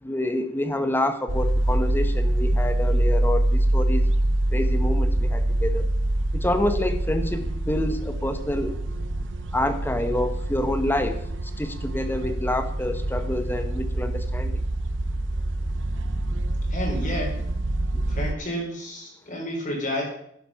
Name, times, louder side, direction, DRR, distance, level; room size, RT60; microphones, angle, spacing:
voice 1, 0.0-4.1 4.5-5.9 6.3-8.8 9.5-14.6 17.9-18.0, left 1 dB, 10° left, 9 dB, 1.0 m, -27 dB
sound 1, 1.3-18.3, right 1 dB, 70° right, 0.9 m, -25 dB
voice 2, 16.7-17.4 18.1-20.0, equal, 40° left, -1 dB, 4.3 m, -30 dB
12.0 x 11.0 x 5.7 m, 0.73 s
head